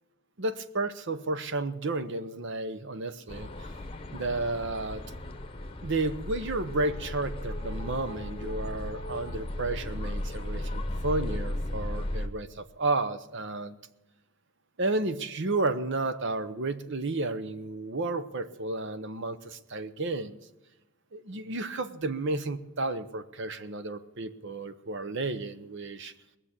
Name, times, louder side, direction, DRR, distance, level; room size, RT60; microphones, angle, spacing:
voice 1, 0.4-3.7 4.1-5.0 5.8-13.8 14.8-20.4 21.1-26.1, right 2 dB, 55° right, 12 dB, 0.8 m, -32 dB
sound 1, 3.3-12.3, left 1 dB, 25° left, 0.9 m, -35 dB
20.0 x 7.4 x 8.1 m, 1.0 s
head